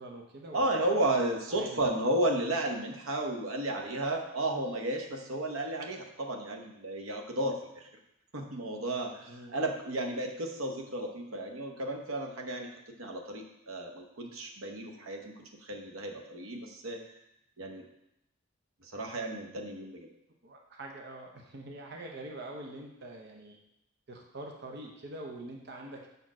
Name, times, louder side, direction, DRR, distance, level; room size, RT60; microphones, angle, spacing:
voice 1, 0.0-0.9 1.1-1.8 9.3-9.6 20.4-23.6 24.1-26.1, right 2 dB, 50° right, 1 dB, 0.7 m, -44 dB
voice 2, 0.5-7.9 8.3-12.7 13.0-17.0 17.6-17.8 18.8-20.1, right 1 dB, 85° right, 3 dB, 0.9 m, -33 dB
5.3 x 4.5 x 6.0 m, 0.84 s
head